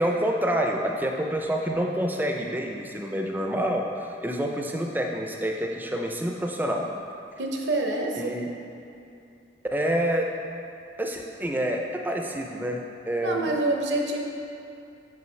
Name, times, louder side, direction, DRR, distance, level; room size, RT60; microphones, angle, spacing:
voice 1, 0.0-6.9 8.2-8.5 9.7-10.4 11.0-13.5, equal, 10° right, 1 dB, 0.4 m, -27 dB
voice 2, 7.4-8.3 13.2-14.2, right 2 dB, 75° right, 1 dB, 0.8 m, -26 dB
8.1 x 4.9 x 3.2 m, 2.7 s
head